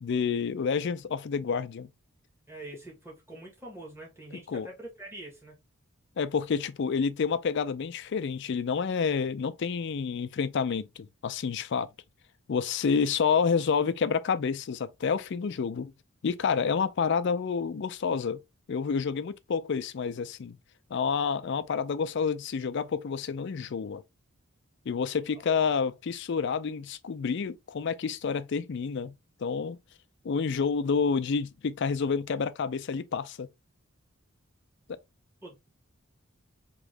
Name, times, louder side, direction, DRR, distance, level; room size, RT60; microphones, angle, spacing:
voice 1, 0.0-1.9 4.5-4.7 6.2-11.9 12.5-15.9 16.2-18.4 18.7-20.6 20.9-24.0 24.9-29.1 29.4-29.8 30.2-33.5 34.9-35.0, left 5 dB, 55° left, 0.4 m, -29 dB
voice 2, 2.5-5.6 25.1-25.4 35.4-35.7, right 1 dB, 10° right, 1.4 m, -45 dB
3.6 x 3.0 x 3.2 m
head